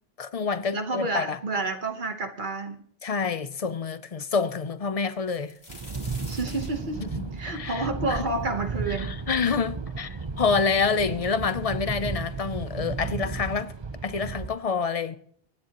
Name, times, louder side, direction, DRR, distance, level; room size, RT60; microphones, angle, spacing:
voice 1, 0.2-1.4 3.0-5.5 7.0-8.5 8.9-13.7 14.0-15.2, left 5 dB, 40° left, 0.6 m, -28 dB
voice 2, 0.7-2.8 6.3-7.0 7.3-9.1, right 3 dB, 55° right, 1.3 m, -29 dB
sound 1, 5.1-8.9 9.4-9.5 10.3-10.4 10.6-11.3 12.2-12.3 12.7-12.9, left 2 dB, 85° left, 3.0 m, -48 dB
sound 2, 5.7-14.6, right 4 dB, 35° right, 0.6 m, -34 dB
24.0 x 10.0 x 3.0 m
omnidirectional pair, 1.0 m